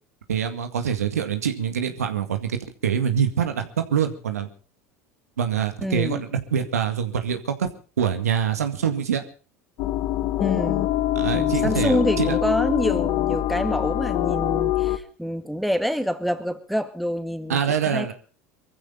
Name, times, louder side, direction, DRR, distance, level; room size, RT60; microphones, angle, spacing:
voice 1, 0.3-2.6 2.8-4.5 5.4-7.7 8.0-9.2 11.2-12.4 17.5-18.1, right 7 dB, 90° right, 7 dB, 2.0 m, -25 dB
voice 2, 5.8-6.2 10.4-10.9 11.3-17.6 17.8-18.1, equal, ahead, 8 dB, 2.0 m, -27 dB
sound 1, 9.8-15.0, left 14 dB, 60° left, 1.7 m, -24 dB
23.0 x 15.0 x 3.9 m, 0.36 s
hypercardioid pair, 80°, 8 cm